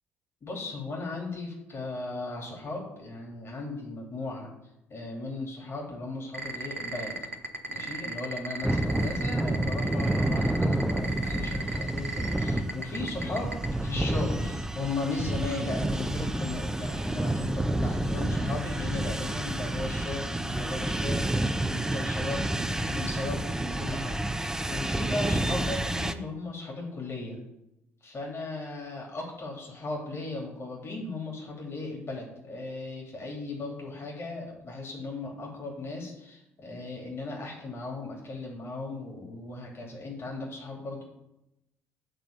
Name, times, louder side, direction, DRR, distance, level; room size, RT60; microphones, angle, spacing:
voice 1, 0.4-4.5 4.9-7.2 7.7-13.5 13.8-27.4 28.0-41.0, left 2 dB, 35° left, -1 dB, 2.6 m, -37 dB
sound 1, 6.3-13.7, right 4 dB, 90° right, 0.5 m, -34 dB
sound 2, 8.6-26.1, right 1 dB, 10° right, 0.7 m, -29 dB
9.3 x 4.0 x 7.0 m, 0.87 s
figure-of-eight pair, 50°, 7 cm